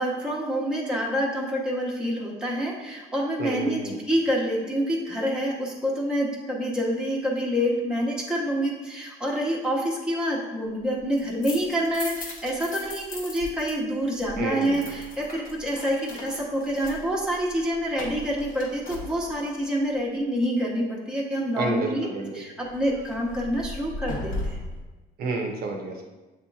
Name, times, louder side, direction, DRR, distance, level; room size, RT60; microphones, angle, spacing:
voice 1, 0.0-22.1 22.3-24.6, equal, 5° right, -5 dB, 0.9 m, -27 dB
voice 2, 3.4-4.0 14.4-14.9 21.6-22.4 25.2-26.0, right 3 dB, 65° right, 2 dB, 0.8 m, -30 dB
sound 1, 11.0-13.7 14.0-19.6 22.6-24.9, left 2 dB, 55° left, 1.0 m, -38 dB
7.4 x 2.9 x 2.4 m, 1.2 s
cardioid pair, 110°, 17 cm